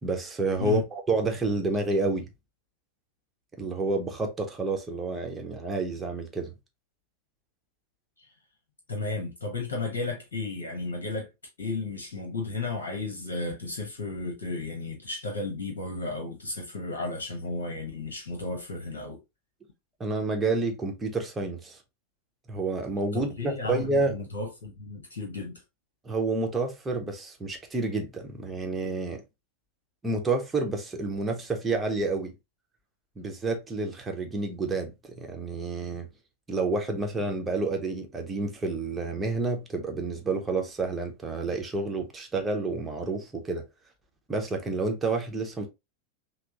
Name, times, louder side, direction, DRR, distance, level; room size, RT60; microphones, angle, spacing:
voice 1, 0.0-2.3 3.6-6.5 20.0-21.8 22.5-24.2 26.0-29.2 30.0-32.3 33.2-36.1 36.5-43.6 44.3-45.7, right 3 dB, 15° right, 0.9 m, -29 dB
voice 2, 8.9-11.3 11.6-19.2 23.1-25.6, left 3 dB, 60° left, 1.1 m, -33 dB
5.9 x 2.0 x 2.9 m
figure-of-eight pair, 90°, 0 cm